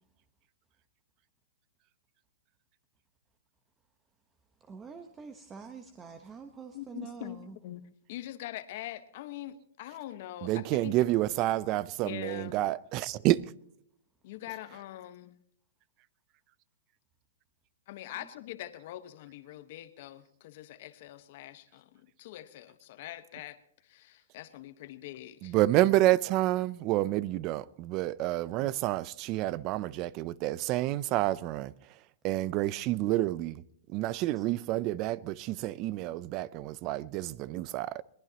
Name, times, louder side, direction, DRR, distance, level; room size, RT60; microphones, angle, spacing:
voice 1, 4.7-7.6 34.4-34.5, right 5 dB, 15° right, 1.0 m, -46 dB
voice 2, 6.7-10.9 12.0-12.6 14.2-15.3 17.9-23.6 23.8-25.5 28.6-28.8, left 14 dB, 50° left, 1.2 m, -43 dB
voice 3, 10.4-13.4 25.4-31.7 32.2-33.6 33.9-38.0, right 16 dB, 30° right, 0.5 m, -29 dB
22.0 x 19.0 x 2.9 m
hypercardioid pair, 155°, 0 cm